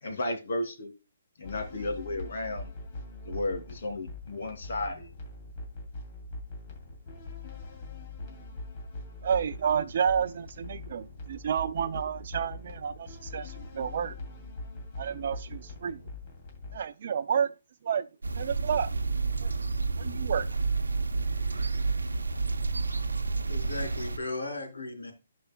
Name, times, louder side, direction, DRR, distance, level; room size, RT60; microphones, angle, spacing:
voice 1, 0.0-0.9 1.4-2.7 3.2-5.1, left 2 dB, 60° left, 2.7 m, -33 dB
sound 1, 1.4-16.8, left 2 dB, 35° left, 2.6 m, -42 dB
voice 2, 9.2-14.2 15.0-16.0 16.7-17.5 17.8-18.1 18.4-18.9 19.4-19.5 20.0-20.5, right 7 dB, 55° right, 0.4 m, -30 dB
sound 2, 18.2-24.2, right 4 dB, 90° right, 0.7 m, -30 dB
voice 3, 23.5-25.1, left 2 dB, 90° left, 3.4 m, -36 dB
12.5 x 5.1 x 2.2 m
hypercardioid pair, 145°, 0 cm